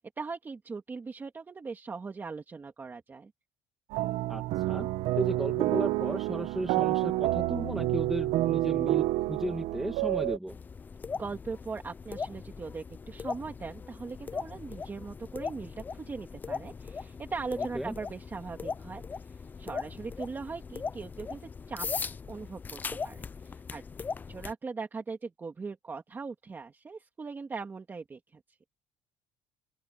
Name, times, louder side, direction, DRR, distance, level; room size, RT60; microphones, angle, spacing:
voice 1, 0.0-3.3 11.2-21.9 22.3-23.8 24.3-28.4, right 4 dB, 20° right, 2.5 m, -40 dB
sound 1, 3.9-10.4, right 17 dB, 75° right, 0.9 m, -29 dB
voice 2, 4.3-4.9 5.2-10.6 17.7-17.9, right 1 dB, 5° right, 1.9 m, -35 dB
sound 2, 10.5-24.5, left 5 dB, 15° left, 0.4 m, -39 dB
open air
cardioid pair, 160°, 10 cm